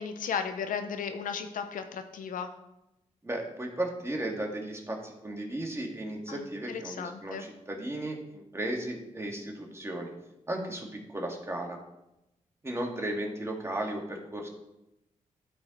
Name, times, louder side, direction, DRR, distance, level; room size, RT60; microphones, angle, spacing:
voice 1, 0.0-2.5 6.3-7.5, left 6 dB, 80° left, 8 dB, 0.7 m, -35 dB
voice 2, 3.2-10.1 10.5-11.8 12.6-14.5, right 1 dB, 20° right, 0 dB, 1.9 m, -35 dB
12.0 x 4.3 x 3.9 m, 0.91 s
cardioid pair, 55°, 14 cm